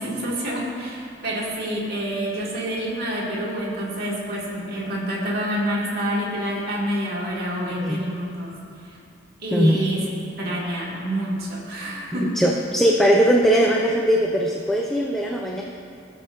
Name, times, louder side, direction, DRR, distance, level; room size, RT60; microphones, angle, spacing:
voice 1, 0.0-8.5 8.8-9.0 9.4-10.1 10.4-12.4, equal, 50° right, -5 dB, 2.0 m, -27 dB
voice 2, 9.5-9.8 12.1-15.6, equal, ahead, -2 dB, 0.4 m, -20 dB
16.5 x 7.1 x 2.6 m, 2.4 s
head